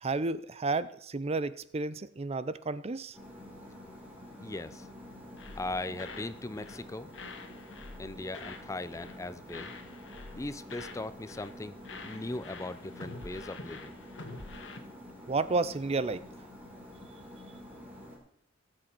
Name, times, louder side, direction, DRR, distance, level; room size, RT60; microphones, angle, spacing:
voice 1, 0.0-3.2 15.3-16.2, right 3 dB, 35° right, 16 dB, 0.5 m, -31 dB
sound 1, 3.1-18.2, left 1 dB, 10° right, 3.8 m, -49 dB
voice 2, 4.4-4.9 5.6-7.1 8.0-9.7 10.4-11.8 12.0-13.9, left 2 dB, 15° left, 14 dB, 0.5 m, -39 dB
sound 2, 5.4-6.3 6.6-6.9 7.1-8.7 8.9-9.2 9.5-11.0 11.3-11.6 11.8-14.8, left 3 dB, 70° left, 1.7 m, -46 dB
17.0 x 7.7 x 4.5 m, 0.71 s
head